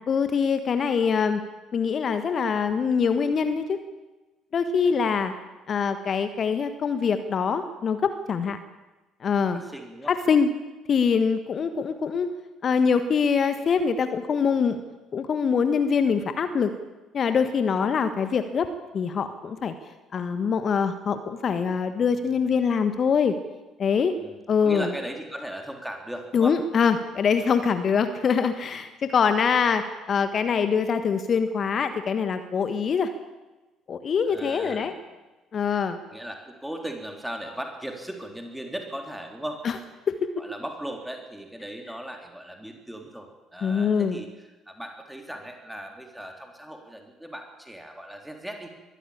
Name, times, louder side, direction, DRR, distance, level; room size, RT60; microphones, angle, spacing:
voice 1, 0.1-1.4 1.7-3.8 4.5-5.3 5.7-8.6 9.2-9.6 10.1-10.5 10.9-12.3 12.6-14.8 15.1-16.7 17.1-18.7 18.9-19.7 20.1-23.4 23.8-24.1 24.5-24.9 26.3-33.1 33.9-34.9 35.5-36.0 39.6-39.7 40.1-40.2 43.6-44.2, left 6 dB, 45° left, 10 dB, 1.4 m, -24 dB
voice 2, 4.8-5.2 9.5-10.1 24.2-26.6 34.2-35.0 36.1-39.6 40.4-44.3 44.7-48.7, right 1 dB, 5° right, 3 dB, 3.6 m, -38 dB
22.5 x 15.0 x 8.7 m, 1.1 s
figure-of-eight pair, 50°, 0 cm